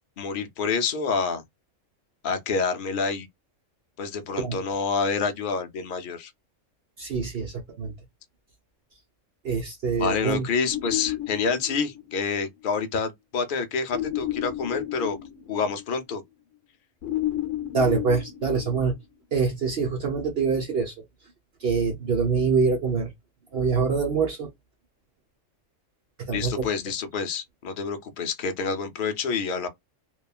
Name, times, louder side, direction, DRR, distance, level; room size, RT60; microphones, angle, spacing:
voice 1, 0.2-1.4 2.2-3.3 4.0-6.3 10.0-15.2 15.5-16.2 26.3-29.7, left 5 dB, 60° left, 0.6 m, -28 dB
voice 2, 7.0-7.9 9.4-10.4 17.7-18.9 19.3-20.9 21.6-23.1 23.5-24.5 26.3-26.7, right 5 dB, 55° right, 0.9 m, -25 dB
sound 1, 10.7-12.4 13.9-16.0 17.0-19.2, left 13 dB, 75° left, 0.9 m, -32 dB
2.9 x 2.3 x 2.3 m
omnidirectional pair, 1.3 m